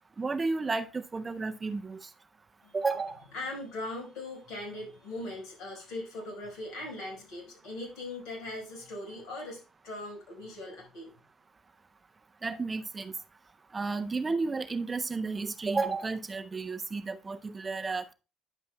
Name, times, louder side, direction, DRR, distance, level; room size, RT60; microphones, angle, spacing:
voice 1, 0.2-2.1 2.7-3.2 12.4-13.1 13.7-18.1, right 3 dB, 25° right, 0.4 m, -32 dB
voice 2, 3.3-11.1, left 2 dB, 80° left, 4.5 m, -40 dB
9.7 x 7.2 x 2.2 m
cardioid pair, 115°, 0 cm